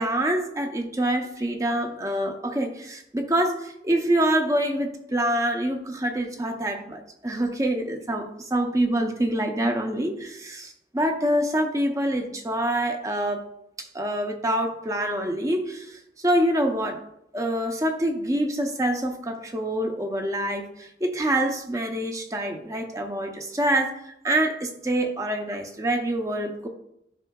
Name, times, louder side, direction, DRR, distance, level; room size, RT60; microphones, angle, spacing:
voice 1, 0.0-13.4 13.8-17.0 17.3-26.7, right 1 dB, 20° right, 4 dB, 0.6 m, -26 dB
11.0 x 5.5 x 2.3 m, 0.79 s
head